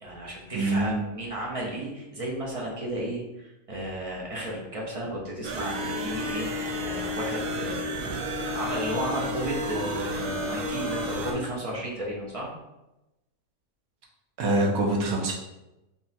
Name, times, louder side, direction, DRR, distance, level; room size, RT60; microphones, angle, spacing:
voice 1, 0.0-7.8 8.3-12.5, right 1 dB, 45° right, -3 dB, 0.4 m, -33 dB
voice 2, 0.5-0.9 14.4-15.3, right 2 dB, 70° right, 0 dB, 1.2 m, -24 dB
sound 1, 5.4-11.3, left 1 dB, 85° right, 1.2 m, -31 dB
3.6 x 2.4 x 4.1 m, 0.95 s
omnidirectional pair, 1.7 m